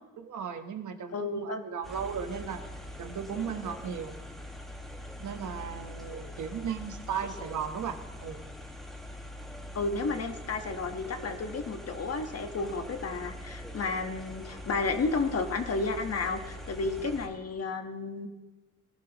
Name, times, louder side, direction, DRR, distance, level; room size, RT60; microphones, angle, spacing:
voice 1, 0.2-2.6 3.0-4.1 5.2-8.4, right 7 dB, 65° right, 7 dB, 1.2 m, -36 dB
voice 2, 1.1-1.6 6.0-6.4 9.7-18.3, left 3 dB, 50° left, 6 dB, 1.3 m, -32 dB
sound 1, 1.8-17.3, left 1 dB, ahead, 1.7 m, -43 dB
20.0 x 11.5 x 3.0 m, 1.2 s
cardioid pair, 90°, 32 cm